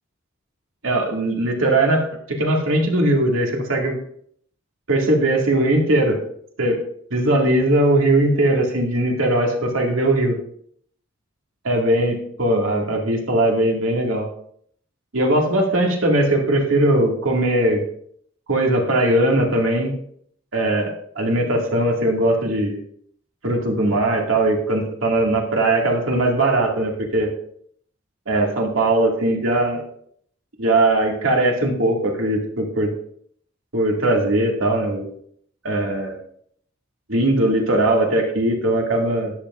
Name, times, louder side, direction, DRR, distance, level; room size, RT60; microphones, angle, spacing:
voice 1, 0.8-2.0 2.3-4.0 4.9-6.2 6.6-6.8 7.1-10.4 11.6-14.3 15.1-17.8 18.5-19.9 20.5-22.8 23.4-27.3 28.3-29.8 30.6-32.9 33.7-35.1 35.6-36.2 37.1-39.3, right 1 dB, 75° right, 0 dB, 2.2 m, -19 dB
13.0 x 10.5 x 2.5 m, 0.65 s
head